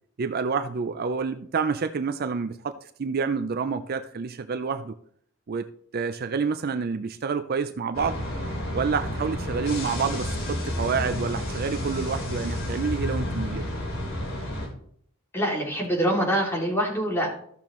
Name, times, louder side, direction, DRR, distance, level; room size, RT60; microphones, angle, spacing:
voice 1, 0.2-4.9 5.5-5.7 5.9-8.2 8.7-13.6, right 5 dB, 45° right, 0.4 m, -28 dB
sound 1, 7.9-14.7, left 1 dB, 70° left, 2.9 m, -30 dB
voice 2, 15.3-17.3, equal, 10° left, 2.7 m, -25 dB
13.5 x 6.9 x 3.1 m
head